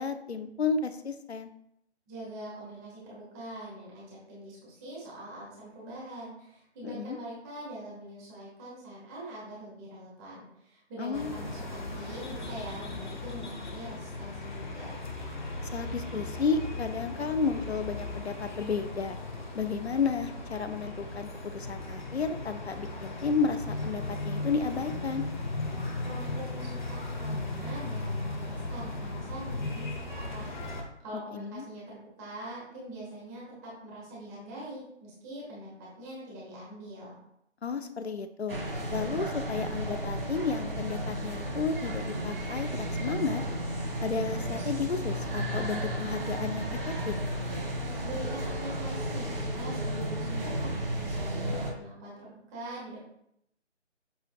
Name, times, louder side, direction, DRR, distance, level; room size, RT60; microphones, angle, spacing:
voice 1, 0.0-1.5 6.8-7.2 11.0-11.3 15.7-19.2 19.5-25.2 31.3-31.6 37.6-38.6 38.9-43.4 44.0-46.8 47.1-47.2, left 5 dB, 65° left, 10 dB, 0.7 m, -32 dB
voice 2, 2.1-14.9 26.0-37.1 48.0-53.0, right 1 dB, 15° right, -6 dB, 1.6 m, -43 dB
sound 1, 11.1-30.8, left 2 dB, 40° left, 1.1 m, -37 dB
sound 2, 38.5-51.7, right 1 dB, 50° right, 1.8 m, -33 dB
7.5 x 5.6 x 2.3 m, 0.76 s
figure-of-eight pair, 150°, 35 cm